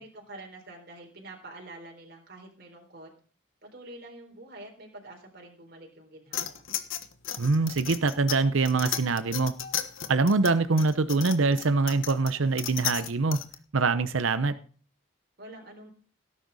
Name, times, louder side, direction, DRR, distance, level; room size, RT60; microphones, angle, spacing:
voice 1, 0.0-3.1 3.7-6.6 15.4-15.9, right 2 dB, 50° right, 0 dB, 4.1 m, -46 dB
sound 1, 6.3-13.5, left 10 dB, 75° left, 1.4 m, -35 dB
voice 2, 7.4-9.5 10.1-13.4 13.7-14.5, right 3 dB, 75° right, 12 dB, 0.7 m, -24 dB
17.5 x 10.0 x 4.1 m, 0.40 s
head